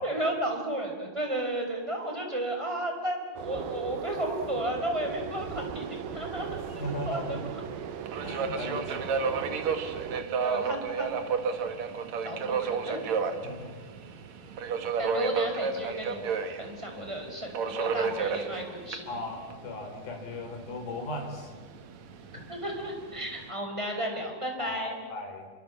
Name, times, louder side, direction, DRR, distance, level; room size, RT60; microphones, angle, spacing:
voice 1, 0.0-7.4 10.1-11.1 12.2-13.2 15.0-16.2 16.6-19.1 22.5-24.9, right 1 dB, 10° right, 2 dB, 5.0 m, -33 dB
sound 1, 3.4-10.2, right 8 dB, 80° right, 3.0 m, -38 dB
Subway metro underground, 5.0-23.5, right 5 dB, 55° right, 2.7 m, -33 dB
voice 2, 6.8-7.5 8.2-10.0 13.4-13.8 19.1-21.5 24.6-25.5, left 2 dB, 85° left, 4 dB, 5.6 m, -38 dB
27.5 x 24.5 x 7.6 m, 1.4 s
omnidirectional pair, 4.1 m